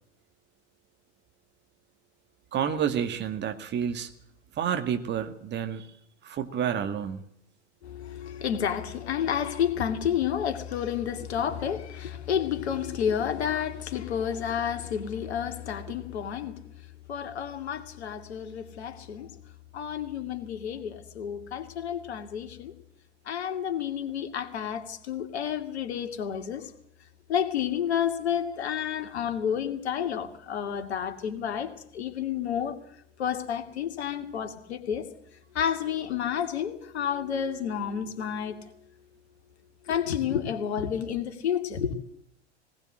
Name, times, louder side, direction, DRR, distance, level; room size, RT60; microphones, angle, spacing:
voice 1, 2.5-4.1 4.6-5.9 6.2-7.2, right 8 dB, 30° right, 2.0 m, -29 dB
voice 2, 7.8-16.6 17.1-19.3 19.7-22.7 23.2-26.7 27.3-32.8 33.2-35.1 35.5-38.7 39.8-41.9, left 8 dB, 65° left, 2.5 m, -30 dB
20.0 x 19.0 x 7.8 m
figure-of-eight pair, 85°, 35 cm